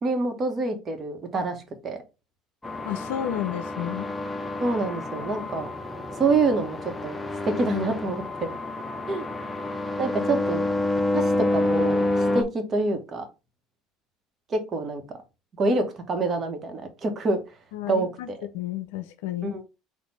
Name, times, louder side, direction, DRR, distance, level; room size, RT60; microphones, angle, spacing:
voice 1, 0.0-2.0 4.6-5.7 6.2-7.2 7.4-8.6 9.1-9.2 10.0-10.6 11.1-13.3 14.5-15.2 15.6-17.4 17.8-18.1 19.4-19.6, right 3 dB, 40° right, 1.2 m, -26 dB
sound 1, 2.6-12.4, left 2 dB, 15° left, 0.7 m, -28 dB
voice 2, 2.8-4.1 17.7-18.3 18.5-19.6, left 11 dB, 85° left, 0.5 m, -31 dB
4.4 x 2.6 x 4.0 m
supercardioid pair, 85°, 0 cm